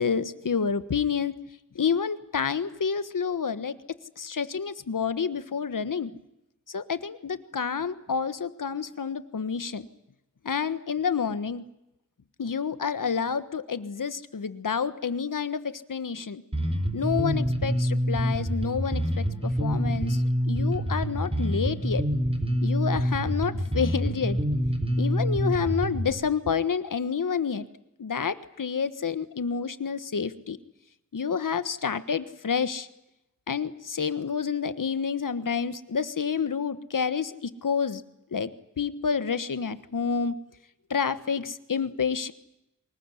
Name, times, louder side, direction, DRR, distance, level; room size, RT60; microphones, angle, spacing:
voice 1, 0.0-1.3 1.7-3.7 4.2-6.1 6.7-9.9 10.4-11.6 12.4-16.4 16.9-22.0 22.6-24.4 25.0-27.7 28.0-30.6 31.1-32.9 33.5-38.0 38.3-38.5 38.8-40.3 40.9-42.3, left 6 dB, 80° left, 13 dB, 1.4 m, -29 dB
Bass guitar, 16.5-26.1, equal, 20° right, 3.8 m, -26 dB
24.0 x 21.0 x 9.8 m, 0.88 s
wide cardioid pair, 90°, 32 cm